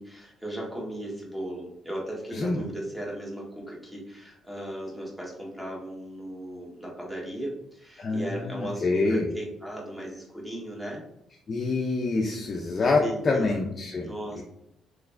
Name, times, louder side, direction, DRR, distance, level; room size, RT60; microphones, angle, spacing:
voice 1, 0.0-11.1 13.0-13.5 14.0-14.4, right 1 dB, 5° right, -3 dB, 1.2 m, -37 dB
voice 2, 2.3-2.6 8.0-9.3 11.5-14.4, left 3 dB, 40° left, 0 dB, 0.5 m, -26 dB
3.3 x 3.1 x 2.4 m, 0.80 s
cardioid pair, 90°, 0 cm